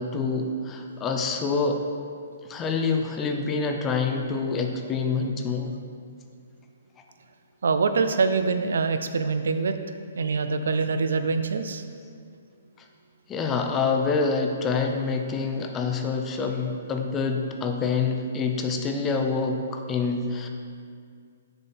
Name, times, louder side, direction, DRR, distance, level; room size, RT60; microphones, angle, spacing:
voice 1, 0.0-1.8 2.4-5.8 13.3-20.5, left 4 dB, 15° left, 4 dB, 0.4 m, -26 dB
voice 2, 7.6-9.7 10.2-11.8, right 4 dB, 80° right, 9 dB, 0.5 m, -24 dB
6.9 x 5.4 x 4.3 m, 2.2 s
hypercardioid pair, 170°, 0 cm